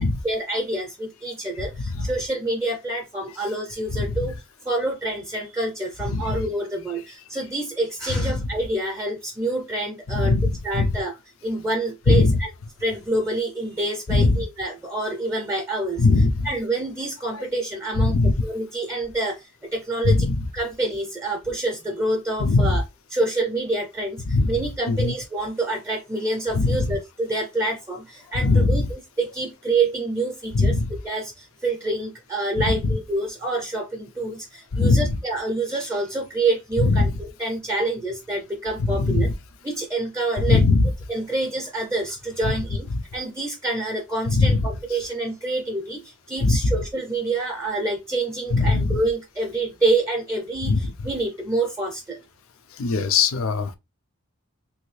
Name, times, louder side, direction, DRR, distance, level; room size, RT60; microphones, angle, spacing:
voice 1, 0.2-4.4 4.6-10.4 10.6-11.1 11.4-12.5 12.8-16.1 16.4-18.2 18.4-20.3 20.5-22.8 23.1-24.2 24.5-28.8 29.2-30.8 31.0-39.3 39.6-40.6 41.1-52.2, right 2 dB, 15° right, 0.5 m, -27 dB
voice 2, 1.6-2.1 3.9-4.2 6.1-6.4 8.1-8.5 10.1-11.0 12.1-12.4 14.1-14.4 16.0-16.5 17.3-17.4 18.0-18.3 20.0-20.4 22.4-22.8 24.3-24.5 24.9-25.1 26.5-26.9 28.4-28.8 30.5-30.9 34.7-35.2 36.8-37.1 38.8-39.3 40.4-40.9 42.4-42.5 42.9-43.0 44.3-44.7 46.4-46.7 48.5-49.0 50.6-50.9 52.8-53.8, left 3 dB, 70° left, 0.5 m, -20 dB
3.1 x 2.7 x 3.1 m
head